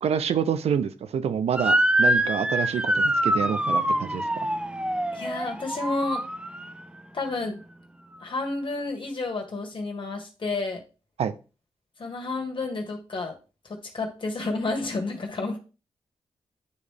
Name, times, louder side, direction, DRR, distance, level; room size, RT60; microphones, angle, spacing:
voice 1, 0.0-4.2 11.2-11.4, right 8 dB, 80° right, 12 dB, 0.5 m, -27 dB
Motor vehicle (road) / Siren, 1.6-6.8, right 1 dB, 10° right, 0.6 m, -25 dB
voice 2, 5.1-6.2 7.1-7.6 8.2-10.8 12.0-13.3 13.6-15.6, left 3 dB, 55° left, 3 dB, 1.8 m, -30 dB
9.4 x 3.2 x 3.4 m, 0.33 s
cardioid pair, 50°, 11 cm